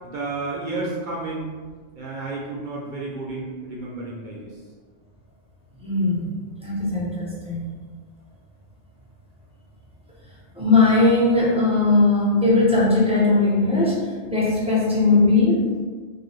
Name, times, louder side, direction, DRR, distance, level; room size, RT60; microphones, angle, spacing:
voice 1, 0.0-1.5 2.0-4.5, right 3 dB, 55° right, -4 dB, 0.6 m, -31 dB
voice 2, 5.8-6.3 6.6-7.6 10.6-15.7, left 3 dB, 10° right, -6 dB, 0.5 m, -19 dB
2.6 x 2.2 x 3.1 m, 1.5 s
omnidirectional pair, 1.1 m